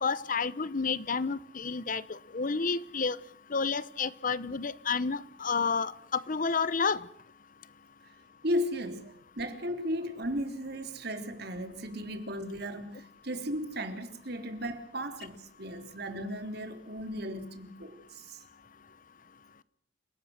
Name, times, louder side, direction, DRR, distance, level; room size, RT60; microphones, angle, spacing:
voice 1, 0.0-2.0 2.3-3.2 3.5-7.0, left 5 dB, 45° left, 0.9 m, -30 dB
voice 2, 8.4-18.4, equal, 60° right, 3.5 m, -35 dB
28.5 x 18.0 x 6.5 m
head